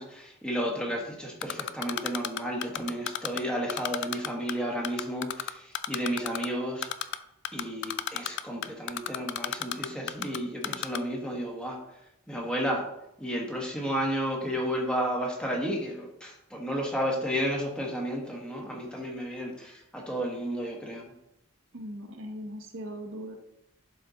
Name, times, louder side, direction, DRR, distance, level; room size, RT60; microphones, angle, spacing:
voice 1, 0.0-6.9 7.5-11.8 12.3-12.9 13.2-21.1, equal, 5° left, -1 dB, 1.2 m, -32 dB
Typing, 1.4-3.4 3.7-4.5 4.8-6.5 6.8-7.2 7.4-10.4 10.6-11.0, left 10 dB, 55° left, 0.4 m, -31 dB
voice 2, 21.7-23.3, equal, 65° right, 3 dB, 1.1 m, -39 dB
11.0 x 4.3 x 3.9 m, 0.84 s
head